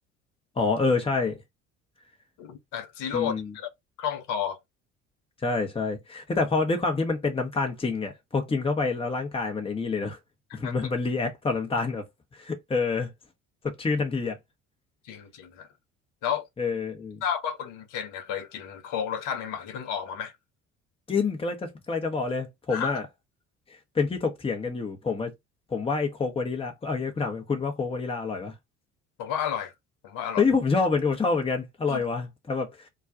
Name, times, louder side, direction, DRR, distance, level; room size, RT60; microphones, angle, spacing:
voice 1, 0.6-1.4 3.1-3.5 5.4-10.2 10.5-12.0 12.3-13.1 13.6-14.4 16.6-17.2 21.1-23.1 23.9-25.3 25.7-28.5 30.4-32.9, left 4 dB, 15° left, 0.8 m, -27 dB
voice 2, 2.4-3.7 4.0-4.6 10.6-10.8 15.0-15.7 16.2-16.5 17.2-20.3 22.7-23.0 29.2-29.7 30.0-30.4 31.9-32.0, left 8 dB, 55° left, 0.8 m, -32 dB
2.3 x 2.2 x 3.7 m
figure-of-eight pair, 55°, 37 cm